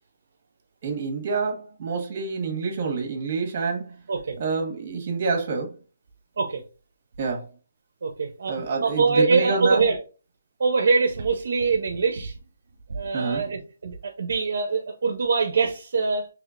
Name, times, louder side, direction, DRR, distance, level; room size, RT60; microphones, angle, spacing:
voice 1, 0.8-3.9 4.4-5.7 7.2-7.4 8.5-9.8 13.1-13.5, right 4 dB, 35° right, 1.4 m, -27 dB
voice 2, 8.0-10.0 10.6-12.3 12.9-16.3, right 4 dB, 65° right, 0.7 m, -24 dB
4.9 x 3.2 x 2.5 m
hypercardioid pair, 165°, 0 cm